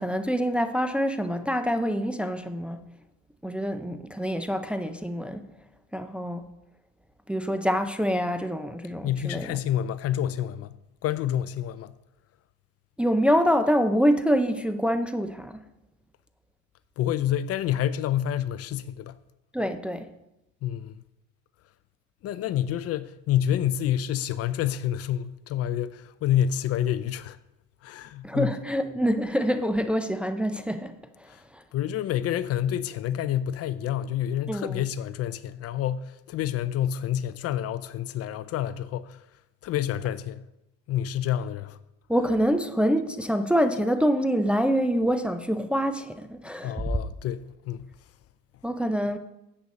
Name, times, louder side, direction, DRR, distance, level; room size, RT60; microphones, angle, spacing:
voice 1, 0.0-2.8 3.4-5.5 5.9-6.5 7.3-9.6 13.0-15.6 19.5-20.1 28.2-31.6 34.5-34.8 42.1-47.0 48.6-49.2, equal, 5° right, 0.5 m, -26 dB
voice 2, 9.0-10.8 11.0-11.9 17.0-19.2 20.6-20.9 22.2-27.4 27.8-28.5 31.7-39.2 39.6-40.4 40.9-41.8 46.6-47.9, left 11 dB, 45° left, 0.5 m, -28 dB
11.0 x 8.2 x 4.1 m
cardioid pair, 120°, 33 cm